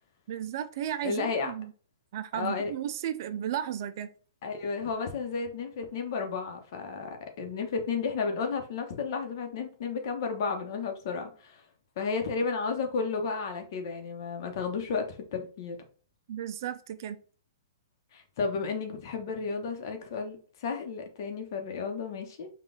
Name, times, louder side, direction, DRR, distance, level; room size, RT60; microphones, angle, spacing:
voice 1, 0.3-1.7 2.1-4.1 16.3-17.2, right 10 dB, 50° right, 0.4 m, -34 dB
voice 2, 1.0-1.5 2.3-2.7 4.4-11.6 12.0-15.8 18.1-22.5, left 5 dB, 55° left, 0.9 m, -33 dB
3.9 x 2.4 x 3.8 m
hypercardioid pair, 145°, 3 cm